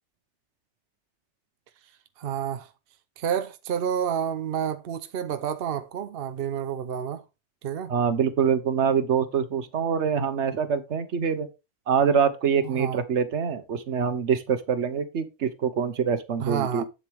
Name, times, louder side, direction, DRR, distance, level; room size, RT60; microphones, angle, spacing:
voice 1, 2.2-2.7 3.2-7.2 7.6-7.9 12.6-13.0 16.4-16.8, right 8 dB, 60° right, 0.8 m, -29 dB
voice 2, 7.9-11.5 11.9-16.8, right 7 dB, 75° right, 1.3 m, -25 dB
8.1 x 7.6 x 3.4 m
omnidirectional pair, 1.2 m